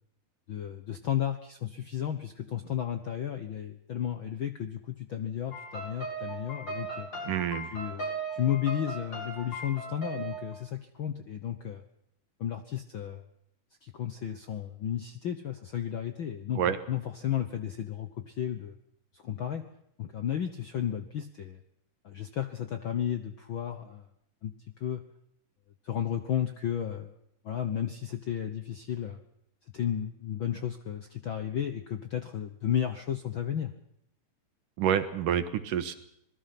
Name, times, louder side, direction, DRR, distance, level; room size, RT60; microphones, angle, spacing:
voice 1, 0.5-7.1 7.6-11.8 12.4-13.2 13.8-18.7 19.1-19.6 20.0-21.6 22.0-24.1 24.4-25.0 25.8-27.1 27.4-29.2 29.7-33.7, left 10 dB, 65° left, 8 dB, 1.2 m, -33 dB
sound 1, 5.5-10.5, right 2 dB, 35° left, 7.3 m, -38 dB
voice 2, 7.3-7.7 16.6-16.8 34.8-36.0, right 9 dB, 80° right, 10 dB, 3.0 m, -28 dB
26.5 x 19.5 x 5.9 m, 0.75 s
omnidirectional pair, 3.7 m